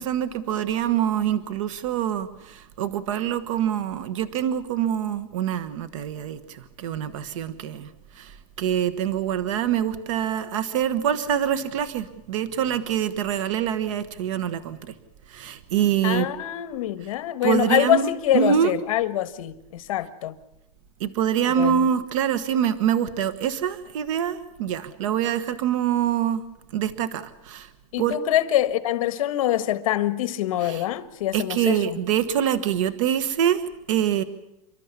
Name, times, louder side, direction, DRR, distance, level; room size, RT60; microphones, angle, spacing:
voice 1, 0.0-7.9 8.1-14.9 15.3-16.3 17.4-18.7 21.0-26.4 26.7-27.7 28.0-28.2 30.6-30.8 31.3-33.6 33.9-34.2, right 9 dB, 60° right, 1.3 m, -25 dB
voice 2, 16.0-20.3 21.5-21.9 27.9-32.0, left 13 dB, 65° left, 1.5 m, -25 dB
29.0 x 12.5 x 9.7 m
supercardioid pair, 170°, 19 cm